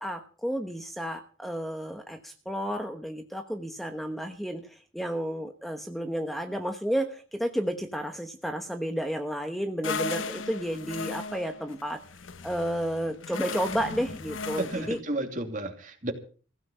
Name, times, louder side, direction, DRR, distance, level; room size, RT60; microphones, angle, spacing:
voice 1, 0.0-12.0 12.4-15.0, equal, ahead, 6 dB, 1.1 m, -32 dB
sound 1, 9.8-15.0, left 4 dB, 80° left, 1.0 m, -36 dB
voice 2, 14.6-16.1, right 2 dB, 40° right, 4 dB, 2.8 m, -32 dB
16.0 x 7.7 x 8.8 m, 0.40 s
head